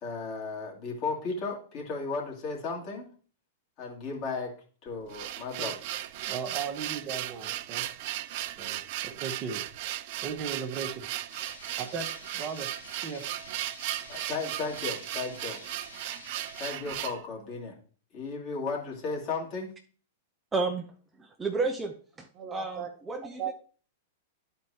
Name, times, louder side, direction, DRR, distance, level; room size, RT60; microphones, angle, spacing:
voice 1, 0.0-3.1 3.8-4.5 4.8-5.7 14.1-15.6 16.6-17.8 18.1-19.7, left 4 dB, 40° left, -2 dB, 2.4 m, -35 dB
sound 1, 4.9-17.2, right 14 dB, 50° right, 0.4 m, -36 dB
voice 2, 6.3-7.9 8.6-9.6 10.2-11.1 11.8-12.1 12.3-12.7 13.0-13.2 22.4-22.9 23.4-23.5, right 6 dB, 35° right, 6 dB, 1.1 m, -36 dB
sound 2, 11.3-16.7, left 3 dB, 80° left, 2.3 m, -49 dB
voice 3, 20.5-20.9 21.2-23.5, right 3 dB, 15° right, 3 dB, 0.7 m, -32 dB
12.0 x 4.5 x 2.8 m, 0.42 s
figure-of-eight pair, 100°, 0 cm